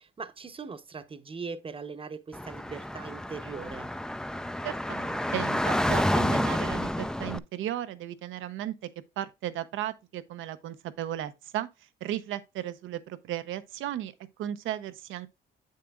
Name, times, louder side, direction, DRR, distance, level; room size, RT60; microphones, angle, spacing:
voice 1, 0.0-3.9, right 5 dB, 25° right, 0.8 m, -40 dB
Car / Traffic noise roadway noise, 2.3-7.4, left 1 dB, 5° left, 0.3 m, -29 dB
voice 2, 4.6-8.7 9.2-11.7 12.0-15.3, right 12 dB, 85° right, 0.7 m, -35 dB
7.9 x 6.6 x 2.3 m
cardioid pair, 90°, 20 cm